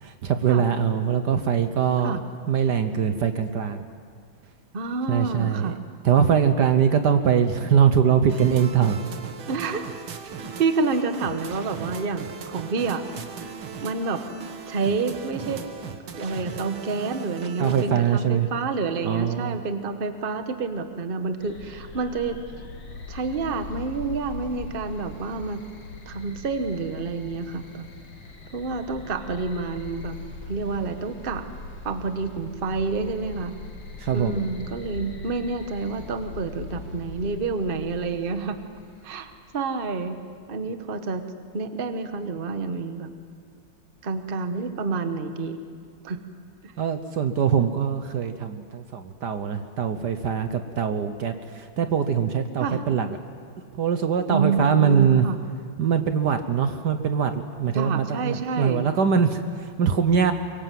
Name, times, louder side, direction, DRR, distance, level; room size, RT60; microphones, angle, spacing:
voice 1, 0.0-2.2 2.5-3.9 5.1-5.7 6.0-9.0 17.6-18.5 19.0-19.6 34.0-34.4 46.8-53.2 53.7-55.3 55.8-60.3, right 7 dB, 60° right, 8 dB, 1.4 m, -22 dB
voice 2, 4.7-5.8 9.5-9.9 10.2-13.0 13.8-14.2 14.7-15.7 16.2-22.4 23.1-25.7 26.1-27.9 28.5-30.2 30.5-31.4 31.8-33.6 34.1-38.6 39.0-40.2 40.5-41.3 41.5-43.1 44.0-45.6 46.0-46.2 46.6-46.7 52.6-52.8 54.3-55.4 57.7-59.0, right 4 dB, 30° right, 8 dB, 1.2 m, -28 dB
sound 1, 8.3-17.8, right 6 dB, 85° right, 2.3 m, -38 dB
sound 2, 21.4-39.4, left 3 dB, 75° left, 3.3 m, -41 dB
24.0 x 23.5 x 7.7 m, 2.1 s
omnidirectional pair, 2.2 m